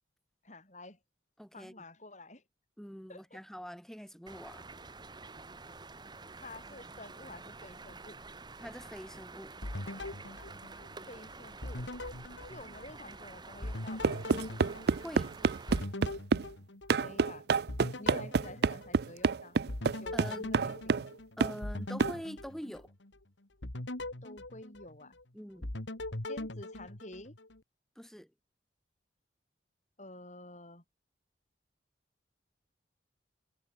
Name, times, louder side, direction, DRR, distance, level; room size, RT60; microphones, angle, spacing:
voice 1, 0.4-1.0 1.5-2.4 3.1-3.4 6.3-8.2 11.1-11.8 12.5-14.4 17.0-17.4 18.0-19.6 20.0-21.1 24.2-25.2 26.3-27.4 30.0-30.8, left 2 dB, 40° left, 7.3 m, -50 dB
voice 2, 1.4-1.7 2.8-4.7 8.6-9.5 15.0-15.3 20.1-20.5 21.4-22.9 25.3-25.7 27.9-28.3, equal, ahead, 6.9 m, -44 dB
sound 1, 4.3-15.8, right 3 dB, 25° right, 1.5 m, -49 dB
sound 2, 9.6-11.2 11.6-13.2 13.6-17.3 17.7-19.3 19.7-23.2 23.6-25.2 25.6-27.6, left 1 dB, 85° left, 2.5 m, -41 dB
sound 3, 14.0-16.5 16.9-21.1 21.4-21.6 22.0-22.2, right 5 dB, 60° right, 0.4 m, -28 dB
head